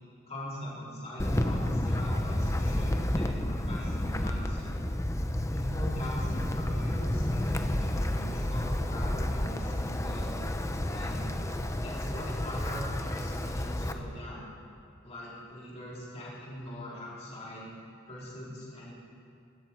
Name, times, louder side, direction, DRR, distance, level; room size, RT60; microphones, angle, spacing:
voice 1, 0.3-4.7 5.5-10.4 10.8-11.3 11.8-14.4 15.0-17.7 18.1-18.9, equal, 30° left, -7 dB, 4.3 m, -41 dB
Wind, 1.2-13.9, left 1 dB, 15° left, 0.7 m, -30 dB
23.0 x 13.5 x 4.7 m, 2.4 s
head